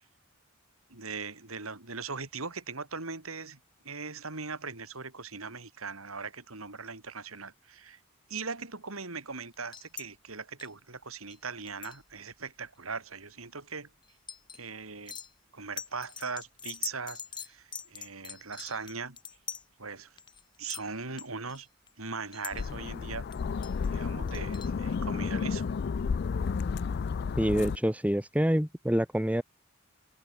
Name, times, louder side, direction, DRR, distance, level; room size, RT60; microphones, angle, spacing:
voice 1, 0.9-3.6 3.8-8.0 8.3-13.9 14.5-15.2 15.5-19.2 19.8-20.1 20.6-21.7 22.0-23.3 23.9-25.7, right 4 dB, 85° right, 4.2 m, -40 dB
sound 1, 9.5-10.1 10.6-10.7 11.3-11.4 11.7-12.3 14.0-14.6 15.1-15.3 15.8-19.6 20.2-20.4 20.7-20.8 21.2-21.9 22.3-22.7 23.3-23.9 24.3-24.7, left 7 dB, 20° left, 4.0 m, -42 dB
sound 2, 22.5-27.8, left 5 dB, 50° left, 0.4 m, -32 dB
voice 2, 27.4-29.4, equal, 5° right, 1.2 m, -26 dB
head